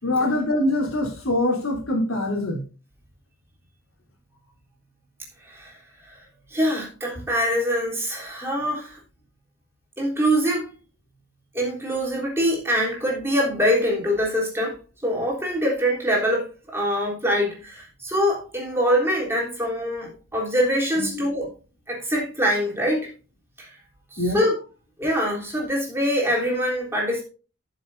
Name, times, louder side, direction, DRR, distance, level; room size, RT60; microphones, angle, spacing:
voice 1, 0.0-2.6 21.1-21.2 24.2-24.4, left 1 dB, 80° left, 3.3 m, -24 dB
voice 2, 5.4-5.8 6.1-6.2 6.5-9.0 10.0-10.7 11.5-21.5 21.9-23.1 23.6-23.8 24.1-24.6 25.0-27.2, equal, 10° right, 3.5 m, -24 dB
14.5 x 7.1 x 2.7 m
head